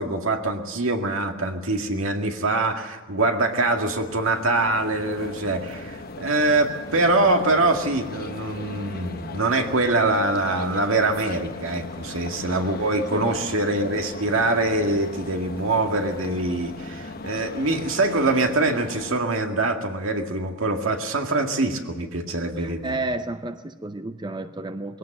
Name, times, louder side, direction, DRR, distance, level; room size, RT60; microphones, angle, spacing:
voice 1, 0.0-22.9, right 2 dB, 75° right, 4 dB, 2.1 m, -24 dB
sound 1, 3.4-19.2, left 3 dB, 45° left, 1.1 m, -38 dB
voice 2, 22.6-25.0, right 2 dB, 20° right, 9 dB, 0.7 m, -31 dB
21.5 x 17.0 x 7.9 m, 1.3 s
head